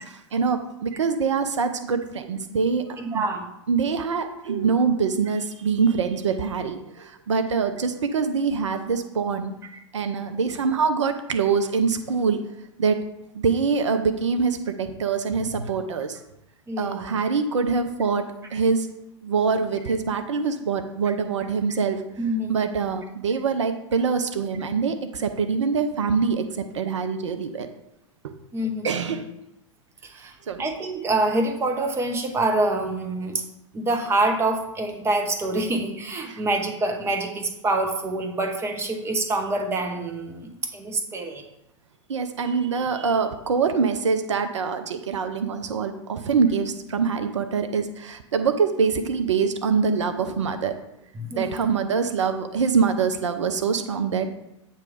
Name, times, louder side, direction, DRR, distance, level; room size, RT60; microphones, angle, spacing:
voice 1, 0.1-3.3 3.7-9.5 9.9-12.4 12.8-13.0 13.3-16.2 16.8-18.2 18.5-18.9 19.2-22.0 22.5-27.7 28.2-28.3 28.8-29.3 30.1-30.6 36.3-36.4 42.1-50.7 51.3-54.3, right 5 dB, 70° right, 8 dB, 0.6 m, -24 dB
voice 2, 3.0-3.5 16.7-17.2 22.2-23.0 28.5-28.9 30.0-30.3 30.6-33.4 33.7-41.4 51.2-51.7, right 2 dB, 15° right, 4 dB, 0.8 m, -26 dB
8.2 x 3.1 x 5.0 m, 0.85 s
figure-of-eight pair, 95°, 16 cm